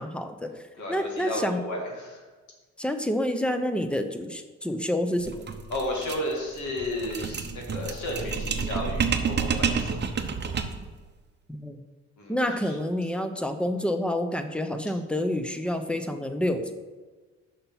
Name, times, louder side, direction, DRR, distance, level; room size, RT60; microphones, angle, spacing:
voice 1, 0.0-0.6 0.9-1.6 2.8-5.4 11.5-11.8 12.3-16.7, left 1 dB, 5° left, 7 dB, 0.8 m, -28 dB
voice 2, 0.8-2.2 5.7-10.1 12.2-12.3, left 1 dB, 70° left, -1 dB, 2.4 m, -33 dB
Metal Glass Objects Rattling, 5.2-10.9, right 6 dB, 35° right, 0.8 m, -29 dB
6.6 x 5.6 x 5.7 m, 1.3 s
cardioid pair, 90°, 30 cm